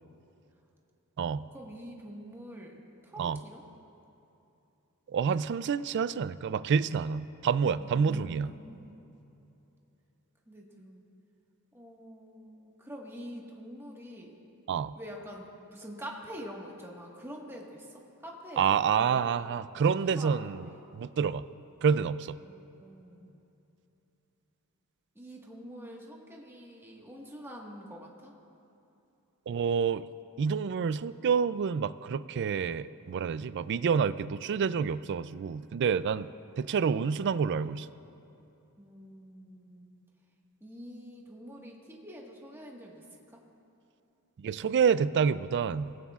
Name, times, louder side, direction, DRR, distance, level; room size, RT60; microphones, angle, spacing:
voice 1, 1.5-3.6 7.8-8.9 10.5-11.0 11.7-14.4 14.9-19.3 20.0-20.8 22.4-23.3 25.1-28.3 38.8-39.9 40.6-43.0, equal, 10° right, -1 dB, 1.5 m, -46 dB
voice 2, 5.1-8.5 14.7-14.9 18.6-20.6 20.9-21.4 21.8-22.4 29.5-30.1 30.4-36.3 36.6-37.9 44.4-45.9, right 6 dB, 50° right, 15 dB, 0.3 m, -28 dB
23.5 x 16.5 x 2.4 m, 2.9 s
head